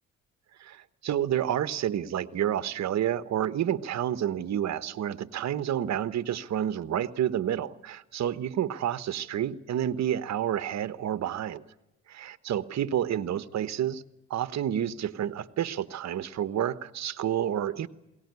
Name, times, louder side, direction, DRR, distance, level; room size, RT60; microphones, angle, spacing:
voice 1, 0.6-11.6 12.1-14.0 14.3-17.9, right 10 dB, 60° right, 1.2 m, -29 dB
21.5 x 18.5 x 9.5 m
cardioid pair, 90°, 30 cm